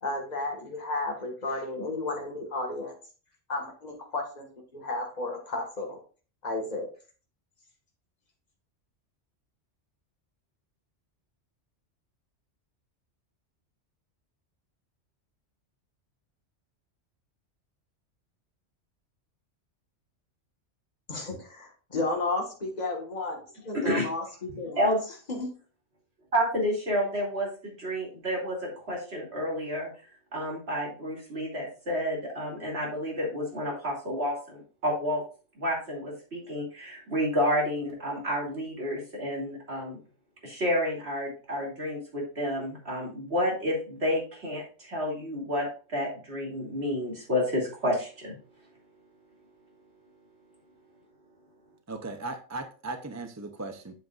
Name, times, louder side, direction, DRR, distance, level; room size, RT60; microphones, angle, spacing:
voice 1, 0.0-2.9 3.5-4.4 4.7-6.0 6.4-6.9 21.1-23.4 23.6-24.8 25.3-25.5, left 2 dB, 35° left, 1 dB, 1.9 m, -33 dB
voice 2, 23.7-24.1 24.8-25.0 26.3-29.9 30.3-35.2 35.6-40.0 40.4-48.3, equal, 65° right, -2 dB, 3.1 m, -30 dB
voice 3, 51.9-54.0, right 2 dB, 20° right, 7 dB, 0.6 m, -37 dB
8.0 x 7.8 x 2.5 m, 0.37 s
omnidirectional pair, 1.2 m